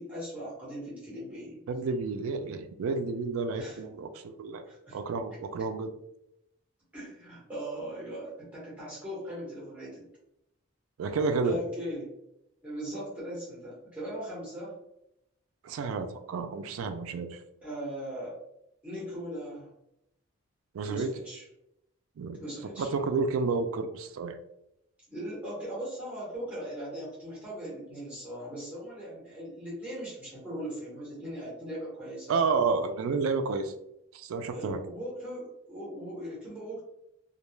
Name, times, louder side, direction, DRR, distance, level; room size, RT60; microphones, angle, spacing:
voice 1, 0.0-1.6 3.5-3.8 4.6-5.0 6.9-10.0 11.4-12.1 12.6-14.7 17.6-18.3 18.8-19.7 20.9-21.4 22.4-22.9 25.1-32.4 34.5-36.8, equal, 5° right, -7 dB, 0.9 m, -39 dB
voice 2, 1.7-4.6 4.9-5.9 11.0-11.6 15.6-17.4 20.7-21.1 22.2-22.4 22.8-24.4 32.3-33.7 34.1-34.8, right 4 dB, 75° right, 8 dB, 0.3 m, -30 dB
2.2 x 2.2 x 3.0 m, 0.82 s
head